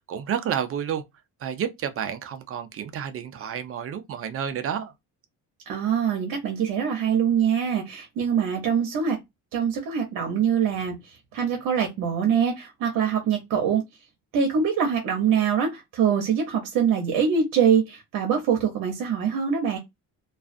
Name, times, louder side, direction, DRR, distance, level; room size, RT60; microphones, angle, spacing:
voice 1, 0.1-1.0 1.4-4.9, right 8 dB, 40° right, 0.5 m, -30 dB
voice 2, 5.7-9.2 9.5-13.8 14.3-19.8, right 7 dB, 75° right, 0.8 m, -24 dB
2.4 x 2.3 x 2.4 m
cardioid pair, 125°, 34 cm